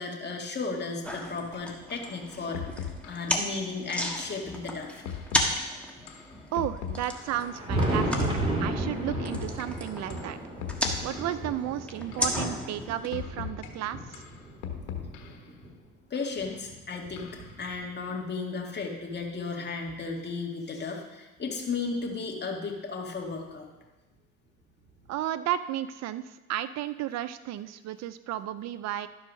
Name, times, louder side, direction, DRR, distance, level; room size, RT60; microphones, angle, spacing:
voice 1, 0.0-2.6 3.1-5.0 14.8-15.4 16.1-23.7, left 4 dB, 35° left, 0 dB, 1.9 m, -35 dB
sound 1, 1.0-13.1, left 1 dB, 5° left, 1.4 m, -35 dB
sound 2, 1.5-1.6 2.0-2.2 2.5-3.3 4.1-4.3 5.1-5.6 6.1-7.4 8.1-8.3 9.1-9.7 10.1-10.3 10.6-11.4 12.1-12.4 13.1-13.7 14.1-15.4 16.2-16.3 17.2-17.5, left 8 dB, 85° left, 1.3 m, -39 dB
voice 2, 6.5-8.3 8.6-10.4 11.0-14.2 25.1-29.1, right 12 dB, 60° right, 13 dB, 0.5 m, -33 dB
Thunder, 7.2-15.7 16.4-18.1 19.2-19.3 19.9-20.0 21.9-22.0 23.3-23.4 25.0-25.1, right 1 dB, 20° right, 2.6 m, -34 dB
12.0 x 4.6 x 6.2 m, 1.1 s
cardioid pair, 95°, 30 cm